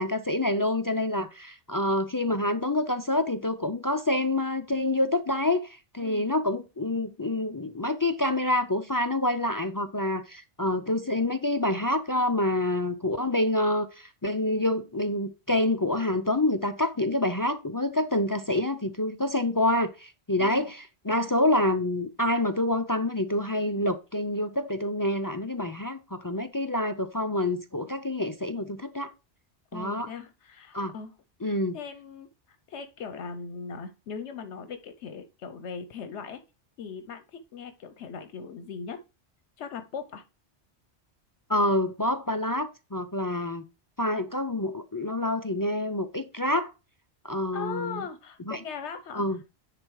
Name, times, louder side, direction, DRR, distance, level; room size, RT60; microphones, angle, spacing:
voice 1, 0.0-29.1 29.7-30.1 30.7-30.9 31.4-31.8 41.5-43.6 44.0-46.7 47.2-48.0 48.5-48.6 49.1-49.4, left 1 dB, 35° left, 0.3 m, -27 dB
voice 2, 20.4-20.7 29.7-31.1 31.4-36.4 36.8-39.0 39.6-40.2 47.5-49.2, left 6 dB, 80° left, 1.0 m, -39 dB
10.0 x 3.8 x 4.7 m
omnidirectional pair, 1.2 m